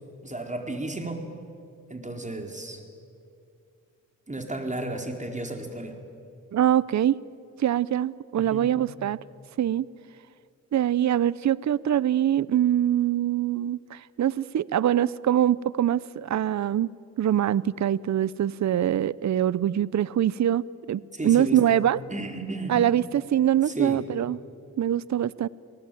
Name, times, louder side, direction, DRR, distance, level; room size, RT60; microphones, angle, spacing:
voice 1, 0.2-1.2 1.9-2.8 4.3-6.0 8.4-8.7 21.1-21.8 22.1-22.8 23.7-24.0, right 2 dB, 20° right, 4 dB, 4.4 m, -33 dB
voice 2, 6.5-7.2 7.6-9.2 9.6-9.8 10.7-16.9 17.2-20.6 20.9-22.0 22.7-24.4 24.8-25.5, right 11 dB, 55° right, 21 dB, 0.7 m, -23 dB
27.5 x 19.0 x 9.3 m, 2.4 s
supercardioid pair, 50°, 34 cm